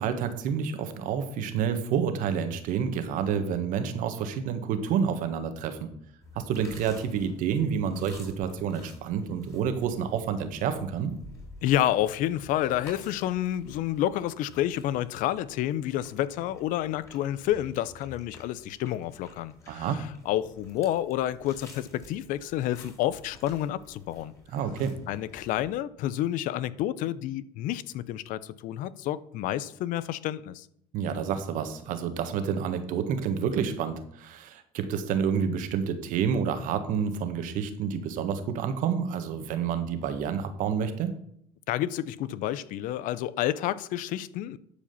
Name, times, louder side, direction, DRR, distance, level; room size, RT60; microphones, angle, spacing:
voice 1, 0.0-5.9 6.3-11.1 19.7-20.0 24.5-24.9 30.9-41.2, right 7 dB, 65° right, 1.5 m, -29 dB
sound 1, 6.2-25.8, left 2 dB, 20° left, 3.8 m, -52 dB
voice 2, 11.6-24.3 25.1-30.7 41.7-44.6, left 13 dB, 65° left, 0.6 m, -29 dB
11.5 x 5.1 x 6.9 m
cardioid pair, 115°, 14 cm